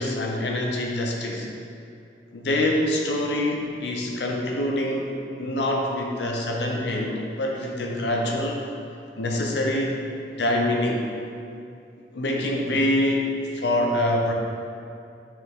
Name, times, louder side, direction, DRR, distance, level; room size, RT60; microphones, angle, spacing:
voice 1, 0.0-1.5 2.3-8.6 9.2-10.0 10.4-11.0 12.1-13.3 13.5-14.3, left 1 dB, 70° left, 0 dB, 0.7 m, -25 dB
6.4 x 5.8 x 3.5 m, 2.5 s
head